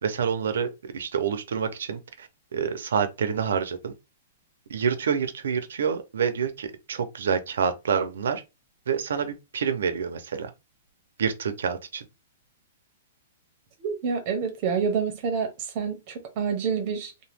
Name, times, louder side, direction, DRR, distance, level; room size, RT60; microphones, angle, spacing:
voice 1, 0.0-3.9 4.7-8.4 8.9-10.5 11.2-12.0, right 7 dB, 85° right, 0.6 m, -27 dB
voice 2, 13.8-15.5 15.7-17.1, right 6 dB, 35° right, 0.8 m, -27 dB
2.8 x 2.2 x 3.3 m
hypercardioid pair, 170°, 0 cm